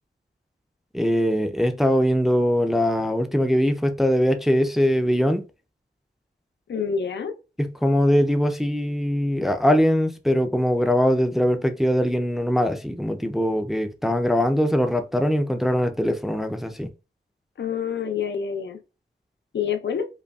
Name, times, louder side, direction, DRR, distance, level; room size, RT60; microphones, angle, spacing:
voice 1, 0.9-5.4 7.6-16.9, equal, ahead, 0.4 m, -21 dB
voice 2, 6.7-7.3 17.6-18.8 19.5-20.1, left 7 dB, 75° left, 0.5 m, -27 dB
5.2 x 2.2 x 2.3 m
wide cardioid pair, 85°, 19 cm